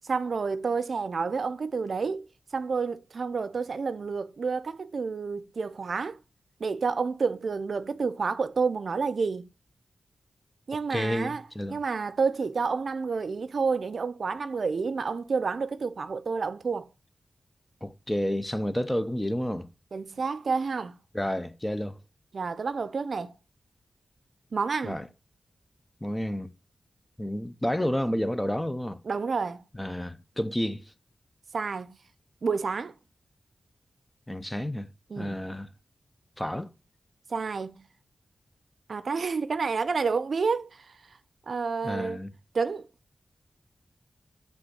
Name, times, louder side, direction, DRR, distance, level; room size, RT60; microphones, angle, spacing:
voice 1, 0.0-2.3 2.5-6.2 6.6-9.5 10.7-11.4 11.7-16.9 19.9-20.9 22.3-23.3 24.5-25.0 29.1-29.6 31.5-31.9 32.4-32.9 35.1-35.4 37.3-37.8 38.9-40.7 41.5-42.2 42.5-42.8, right 5 dB, 65° right, 0.5 m, -29 dB
voice 2, 10.9-11.8 17.8-19.7 21.1-22.0 24.8-25.1 26.0-26.5 27.2-29.0 29.7-30.9 34.3-34.9 35.2-35.7 36.4-36.7 41.8-42.3, equal, 10° left, 0.6 m, -30 dB
7.6 x 3.5 x 6.3 m
wide cardioid pair, 105°, 0 cm